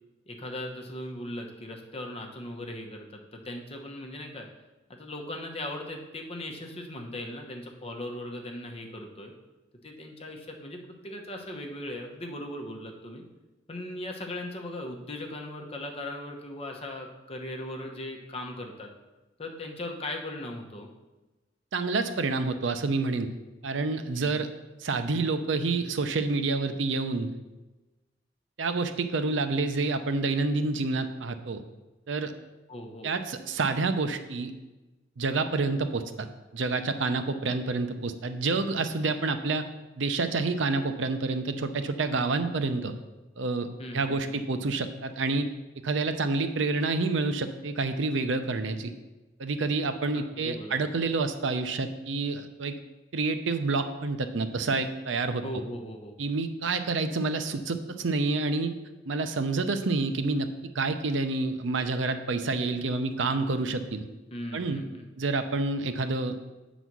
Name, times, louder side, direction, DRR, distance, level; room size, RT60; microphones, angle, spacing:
voice 1, 0.3-4.5 4.9-9.3 9.8-13.2 13.7-18.9 19.4-20.9 24.1-24.5 32.7-33.1 43.8-44.3 50.1-50.9 55.4-56.1 64.3-65.1, left 1 dB, 30° left, 2 dB, 1.0 m, -38 dB
voice 2, 21.7-23.3 23.6-24.5 24.8-27.3 28.6-31.6 32.1-32.3 33.0-34.5 35.2-36.3 36.5-39.7 40.0-42.9 43.4-45.5 45.8-48.9 49.4-52.8 53.1-55.4 56.2-58.7 59.1-60.5 60.7-64.1 64.5-64.8 65.2-66.4, right 3 dB, 80° right, 9 dB, 0.6 m, -28 dB
8.0 x 4.1 x 6.1 m, 1.1 s
head